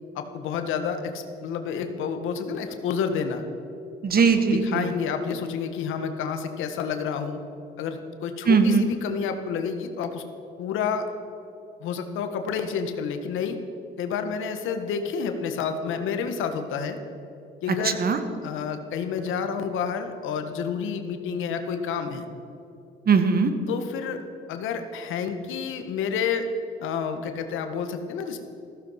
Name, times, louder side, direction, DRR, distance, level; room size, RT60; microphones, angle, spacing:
voice 1, 0.1-3.4 4.7-7.4 7.8-10.2 10.6-11.1 11.8-13.6 14.0-17.0 17.6-18.0 18.4-22.3 23.7-24.2 24.5-28.4, left 6 dB, 90° left, 7 dB, 1.6 m, -29 dB
voice 2, 4.0-5.0 8.5-8.9 17.7-18.2 23.1-23.5, right 5 dB, 50° right, 8 dB, 1.8 m, -20 dB
15.5 x 15.0 x 5.9 m, 2.9 s
cardioid pair, 90°, 20 cm